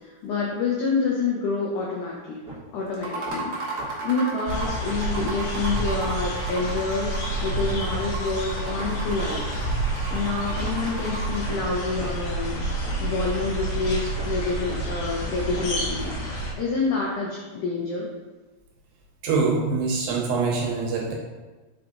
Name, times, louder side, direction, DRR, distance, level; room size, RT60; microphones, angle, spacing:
voice 1, 0.0-2.4 2.7-3.5 3.9-9.4 9.9-12.6 13.0-16.1 16.6-18.1, left 4 dB, 80° left, -4 dB, 1.7 m, -28 dB
sound 1, 2.5-2.6 3.0-3.4 3.8-3.9 4.3-4.4 4.6-4.8 5.1-5.3 5.7-5.8 6.0-6.2 6.6-6.7 7.1-8.0 8.4-8.5 8.8-8.9 9.3-9.4 9.8-10.7 11.1-11.2 11.5-11.7 12.0-12.1 12.5-12.6 12.8-13.1 13.4-13.5 13.9-14.4 14.7-14.8 15.2-15.3 15.5-15.8 16.1-16.2 16.6-16.7, right 4 dB, 30° right, 1.6 m, -40 dB
sound 2, 2.9-11.5, right 3 dB, 60° right, 2.0 m, -35 dB
sound 3, 4.5-16.5, right 1 dB, 55° left, 2.1 m, -29 dB
voice 2, 19.2-21.1, right 4 dB, 75° right, -1 dB, 3.1 m, -24 dB
5.8 x 5.0 x 3.9 m, 1.2 s
omnidirectional pair, 4.8 m